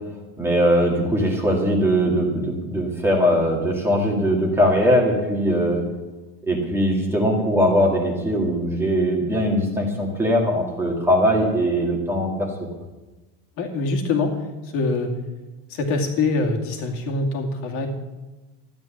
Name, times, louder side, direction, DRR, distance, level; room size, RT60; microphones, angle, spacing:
voice 1, 0.4-5.8 6.5-12.5, equal, 5° right, -1 dB, 1.9 m, -20 dB
voice 2, 13.6-14.3 14.7-15.1 15.7-17.9, left 3 dB, 40° left, 3 dB, 2.3 m, -24 dB
14.0 x 11.0 x 7.4 m, 1.2 s
cardioid pair, 175°, 35 cm